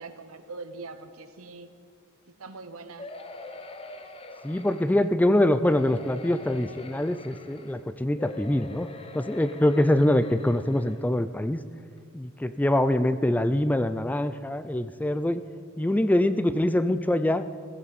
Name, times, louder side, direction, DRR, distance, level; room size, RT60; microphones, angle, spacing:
voice 1, 0.0-1.7 2.4-3.1, right 3 dB, 90° right, 9 dB, 1.0 m, -42 dB
sound 1, 3.0-5.1 5.6-7.8 8.2-11.0 11.6-11.7 12.0-12.1, left 2 dB, 30° left, 0.8 m, -44 dB
voice 2, 4.4-8.9 9.1-11.6 12.1-15.4 15.8-17.4, left 1 dB, 10° left, 12 dB, 0.3 m, -24 dB
15.5 x 14.0 x 4.1 m, 2.2 s
head